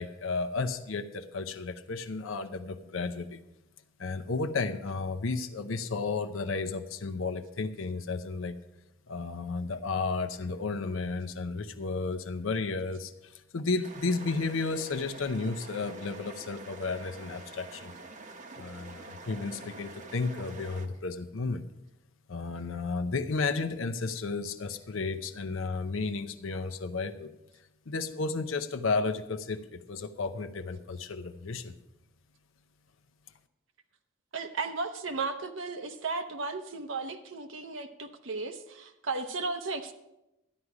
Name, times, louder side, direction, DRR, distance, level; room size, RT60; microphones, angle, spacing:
voice 1, 0.0-3.4 4.0-8.6 9.1-17.9 18.6-21.6 22.3-27.3 27.9-31.7, left 4 dB, 85° left, 7 dB, 0.7 m, -33 dB
sound 1, 13.8-20.9, right 3 dB, 40° right, 0.9 m, -46 dB
voice 2, 34.3-39.9, right 3 dB, 75° right, 6 dB, 0.8 m, -35 dB
12.5 x 9.6 x 4.9 m, 0.93 s
head